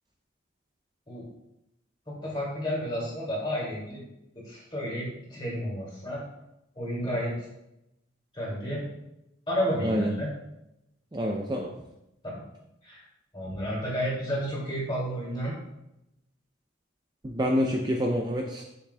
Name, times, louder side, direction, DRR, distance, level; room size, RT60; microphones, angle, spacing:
voice 1, 2.1-4.0 4.4-6.2 6.8-7.3 8.3-8.8 9.5-10.3 12.2-12.4 12.8-13.0 13.3-15.5, equal, 20° left, -5 dB, 2.4 m, -31 dB
voice 2, 9.8-10.1 11.1-11.7 17.2-18.6, equal, 20° right, 0 dB, 0.4 m, -27 dB
7.4 x 6.8 x 2.2 m, 0.87 s
head